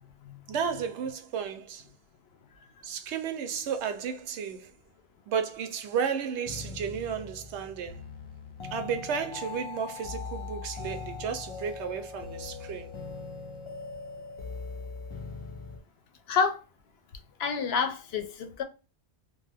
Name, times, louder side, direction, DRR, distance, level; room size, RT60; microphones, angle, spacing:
voice 1, 0.5-1.8 2.8-4.7 5.3-8.0 8.7-12.9, right 7 dB, 80° right, 0.9 m, -33 dB
sound 1, 6.5-15.8, left 4 dB, 50° left, 0.3 m, -40 dB
voice 2, 16.3-16.6 17.4-18.6, left 6 dB, 70° left, 0.8 m, -28 dB
2.5 x 2.2 x 3.2 m
omnidirectional pair, 1.2 m